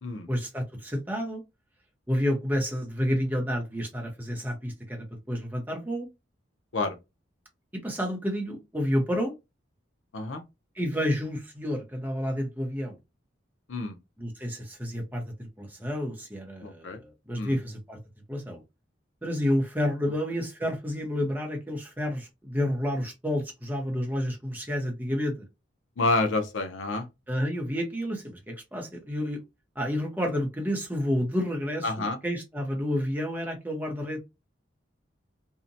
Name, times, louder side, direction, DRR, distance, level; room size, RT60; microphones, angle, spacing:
voice 1, 0.3-1.4 2.1-6.1 7.8-9.3 10.8-13.0 14.2-18.0 18.3-18.6 19.2-25.5 27.3-29.4 29.8-34.2, equal, 10° right, 0.7 m, -30 dB
voice 2, 16.6-17.0 17.4-17.6 26.0-27.1 31.8-32.2, left 2 dB, 90° left, 0.6 m, -28 dB
2.7 x 2.1 x 2.6 m
head